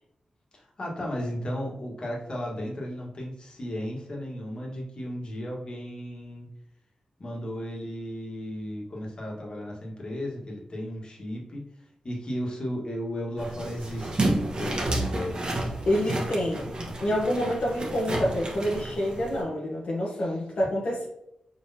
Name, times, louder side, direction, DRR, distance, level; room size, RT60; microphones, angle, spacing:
voice 1, 0.5-6.5 7.2-11.6 12.0-14.3 14.5-16.2 20.1-20.4, equal, 45° left, -2 dB, 1.5 m, -35 dB
sound 1, 13.4-19.4, right 2 dB, 40° right, 1.1 m, -31 dB
voice 2, 15.8-16.7 17.0-21.1, equal, 65° left, -4 dB, 1.1 m, -27 dB
4.8 x 4.0 x 2.8 m, 0.79 s
wide cardioid pair, 85°, 2 cm